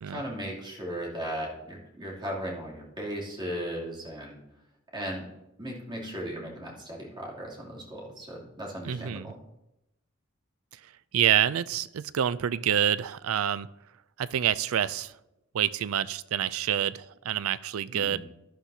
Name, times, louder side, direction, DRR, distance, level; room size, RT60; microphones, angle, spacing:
voice 1, 0.1-4.4 4.9-5.3 5.6-9.4 17.9-18.2, equal, 20° right, -4 dB, 2.9 m, -37 dB
voice 2, 8.8-9.3 11.1-13.7 14.2-15.1 15.5-18.2, right 10 dB, 80° right, 17 dB, 0.4 m, -27 dB
12.0 x 11.5 x 2.8 m, 0.92 s
head